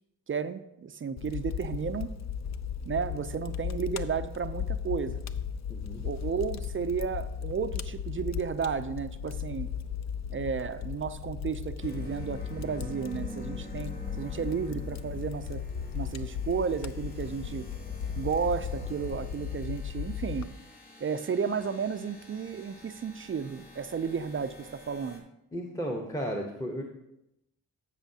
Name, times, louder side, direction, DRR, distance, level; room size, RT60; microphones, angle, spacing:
voice 1, 0.3-2.1 2.9-5.2 6.0-9.7 10.3-13.9 14.2-15.6 15.9-17.7 18.2-20.5 21.0-25.2, right 6 dB, 35° right, 11 dB, 0.5 m, -33 dB
Fire, 1.2-20.5, left 7 dB, 50° left, 0.5 m, -36 dB
voice 2, 5.7-6.0 25.5-26.8, equal, 10° left, 1 dB, 1.0 m, -34 dB
sound 1, 11.8-25.2, equal, 25° left, 2.7 m, -47 dB
14.0 x 5.6 x 2.8 m, 0.86 s
cardioid pair, 70°, 35 cm